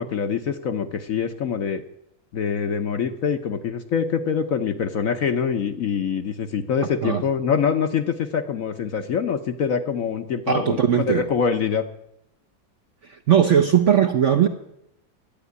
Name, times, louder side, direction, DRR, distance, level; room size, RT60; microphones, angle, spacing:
voice 1, 0.0-1.8 2.3-11.9, left 6 dB, 60° left, 8 dB, 1.0 m, -25 dB
voice 2, 10.5-11.2 13.1-14.5, right 8 dB, 60° right, 6 dB, 0.8 m, -18 dB
12.0 x 9.1 x 9.5 m, 0.80 s
omnidirectional pair, 2.0 m